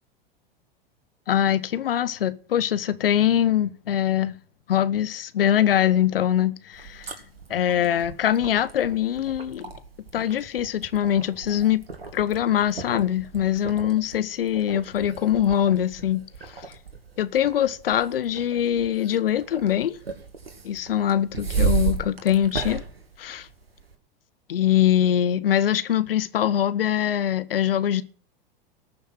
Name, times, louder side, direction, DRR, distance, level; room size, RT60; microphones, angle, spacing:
voice 1, 1.3-4.3 4.7-7.1 7.5-9.7 10.1-11.8 12.1-16.2 17.2-20.0 20.6-22.8 23.2-23.5 24.5-28.0, left 10 dB, 75° left, 1.2 m, -23 dB
sound 1, 6.7-23.9, right 5 dB, 85° right, 2.6 m, -34 dB
19.5 x 7.0 x 7.5 m
hypercardioid pair, 90°, 29 cm